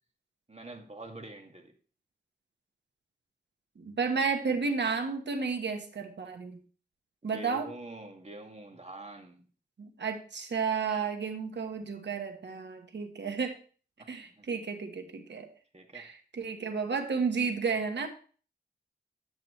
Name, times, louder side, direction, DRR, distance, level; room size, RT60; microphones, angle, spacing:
voice 1, 0.5-1.7 7.2-9.4 14.2-14.5 15.7-16.1, right 2 dB, 35° right, 3 dB, 2.1 m, -45 dB
voice 2, 3.8-6.6 7.2-7.7 9.8-13.6 14.1-15.5 15.9-18.1, right 5 dB, 85° right, 5 dB, 1.3 m, -32 dB
10.5 x 8.8 x 3.2 m, 0.40 s
cardioid pair, 50°, 18 cm